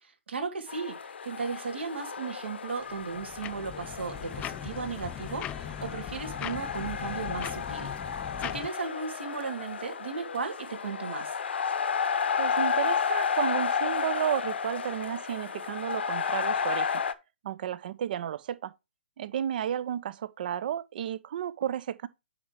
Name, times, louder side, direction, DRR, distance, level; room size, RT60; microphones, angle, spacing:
voice 1, 0.0-7.9 8.2-11.4, right 5 dB, 70° right, 2.7 m, -36 dB
sound 1, 0.7-17.1, left 6 dB, 70° left, 0.9 m, -32 dB
sound 2, 2.9-8.7, left 11 dB, 15° left, 0.4 m, -39 dB
voice 2, 12.4-17.0 17.4-18.7 19.2-22.1, right 10 dB, 50° right, 0.7 m, -32 dB
8.6 x 5.7 x 3.2 m
hypercardioid pair, 135°, 6 cm